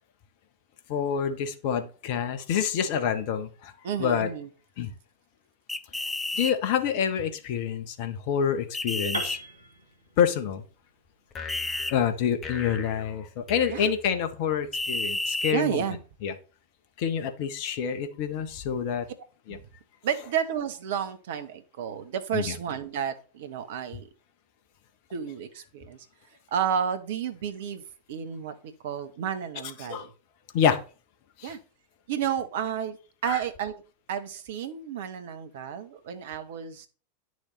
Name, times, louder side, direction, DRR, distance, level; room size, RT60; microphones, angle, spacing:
voice 1, 0.9-3.7 4.0-4.3 4.8-4.9 6.4-9.4 10.2-10.6 11.9-15.8 16.2-16.3 17.0-19.1 19.5-19.6 22.3-22.6 29.9-30.1 30.5-30.8 31.4-31.5 33.2-33.4, left 8 dB, 45° left, 9 dB, 1.3 m, -27 dB
voice 2, 3.8-4.5 13.7-13.9 15.5-16.0 19.5-19.6 20.0-24.1 25.1-26.1 26.5-27.8 28.1-30.1 31.4-31.6 32.1-33.0 33.2-33.8 34.1-36.9, right 8 dB, 55° right, 10 dB, 1.3 m, -31 dB
sound 1, 5.7-6.5 8.7-9.4 11.5-11.9 14.7-15.6, left 2 dB, 10° left, 0.5 m, -30 dB
Piano, 9.1-13.1, right 2 dB, 80° right, 1.8 m, -40 dB
sound 2, 11.3-14.7, left 5 dB, 30° left, 1.4 m, -41 dB
10.0 x 6.4 x 4.1 m, 0.36 s
figure-of-eight pair, 90°, 0 cm